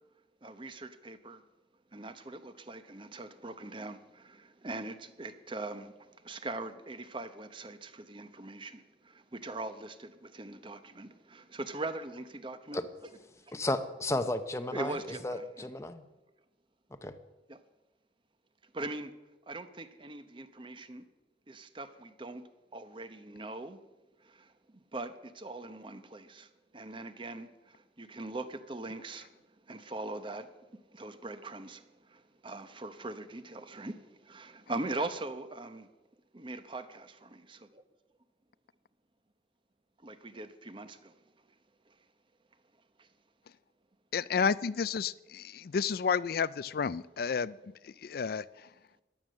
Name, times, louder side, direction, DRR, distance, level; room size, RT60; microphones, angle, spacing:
voice 1, 0.4-1.4 1.9-12.9 13.5-13.6 14.7-15.7 17.5-17.6 18.7-19.1 19.5-21.0 21.5-22.4 22.7-23.8 24.2-29.3 29.7-30.6 30.9-35.9 36.3-37.8 40.0-41.1 41.9-42.0 43.0-43.1, right 2 dB, 30° right, 11 dB, 0.9 m, -41 dB
voice 2, 13.5-14.9 15.2-16.0 17.0-17.1, left 1 dB, 15° left, 9 dB, 0.7 m, -33 dB
voice 3, 44.1-47.6 47.8-48.4, left 6 dB, 55° left, 19 dB, 0.4 m, -31 dB
14.5 x 11.0 x 6.4 m, 1.1 s
head